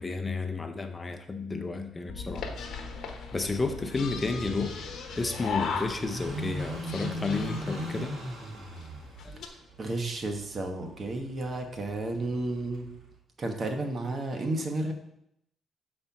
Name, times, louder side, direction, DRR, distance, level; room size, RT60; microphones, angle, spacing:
voice 1, 0.0-2.5 3.3-4.7 5.1-8.2 9.2-9.4, left 3 dB, 25° left, 7 dB, 0.7 m, -32 dB
sound 1, 2.1-10.4, left 4 dB, 90° left, 0.8 m, -46 dB
sound 2, 2.4-6.3 6.6-7.9 8.5-8.6 8.8-8.9 9.2-9.5, left 6 dB, 70° left, 1.0 m, -38 dB
Car passing by / Idling, 2.5-13.1, right 1 dB, 60° right, 2.2 m, -41 dB
voice 2, 9.4-12.9 13.4-14.9, right 2 dB, 40° right, 4 dB, 1.2 m, -32 dB
6.7 x 4.3 x 5.9 m, 0.78 s
cardioid pair, 90°, 0 cm